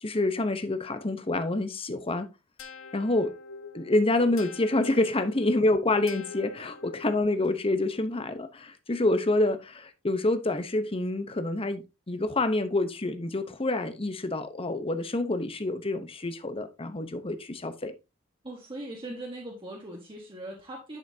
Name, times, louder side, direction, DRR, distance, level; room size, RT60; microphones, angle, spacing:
voice 1, 0.0-2.3 2.9-3.3 3.7-17.9, left 2 dB, 25° left, 0.9 m, -27 dB
sound 1, 2.6-7.4, left 4 dB, 65° left, 1.2 m, -45 dB
voice 2, 18.4-21.0, right 1 dB, 25° right, 1.5 m, -40 dB
10.5 x 5.7 x 2.8 m
head